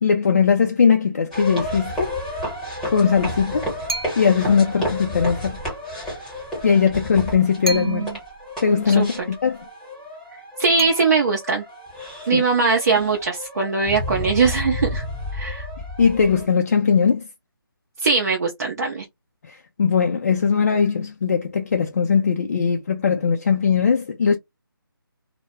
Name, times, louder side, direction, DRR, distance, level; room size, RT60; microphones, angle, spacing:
voice 1, 0.0-2.2 2.9-3.7 4.2-5.6 6.6-8.1 8.6-9.6 12.3-12.4 16.0-17.3 19.5-24.4, left 6 dB, 40° left, 0.3 m, -19 dB
sound 1, 1.3-16.5, left 1 dB, 5° left, 1.0 m, -32 dB
sound 2, 3.9-4.5 7.6-8.3 10.8-11.6, right 2 dB, 85° right, 0.8 m, -31 dB
voice 2, 7.7-8.2 8.9-9.3 10.6-11.6 12.3-15.0 15.3-15.7 18.0-19.1, right 4 dB, 45° right, 0.6 m, -21 dB
2.2 x 2.1 x 2.9 m
figure-of-eight pair, 160°, 12 cm